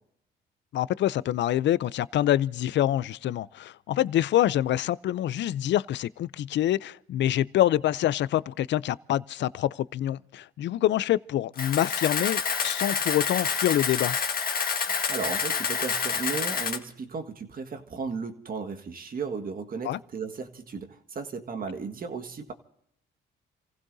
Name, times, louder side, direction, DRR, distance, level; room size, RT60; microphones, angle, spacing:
voice 1, 0.7-14.2 19.8-20.0, left 12 dB, 65° left, 0.5 m, -26 dB
Camera, 11.6-16.8, left 6 dB, 50° left, 1.7 m, -28 dB
voice 2, 14.8-22.5, right 4 dB, 45° right, 1.7 m, -35 dB
29.5 x 15.5 x 2.7 m
cardioid pair, 90°, 20 cm